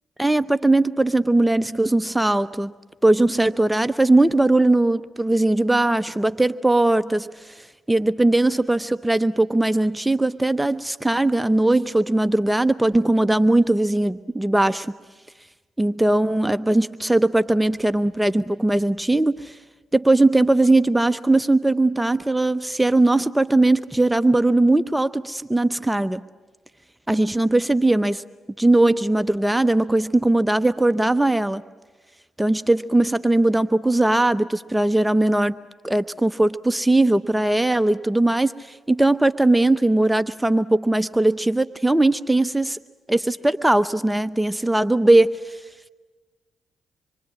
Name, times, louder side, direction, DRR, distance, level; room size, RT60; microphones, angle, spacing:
voice 1, 0.2-2.7 3.0-14.9 15.8-19.6 19.9-26.2 27.1-28.2 28.6-31.6 32.4-35.6 35.8-42.8 43.1-45.6, right 2 dB, 10° right, 13 dB, 0.8 m, -19 dB
26.5 x 23.5 x 8.6 m, 1.3 s
hypercardioid pair, 45°, 0 cm